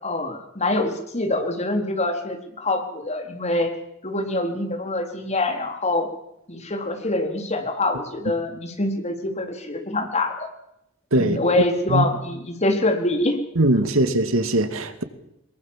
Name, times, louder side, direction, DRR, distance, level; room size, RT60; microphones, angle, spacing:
voice 1, 0.0-3.7 4.0-6.1 6.5-10.5 11.2-13.4, left 2 dB, 35° left, 4.2 m, -25 dB
voice 2, 13.6-15.0, right 1 dB, 90° right, 2.4 m, -20 dB
23.5 x 22.0 x 7.5 m
head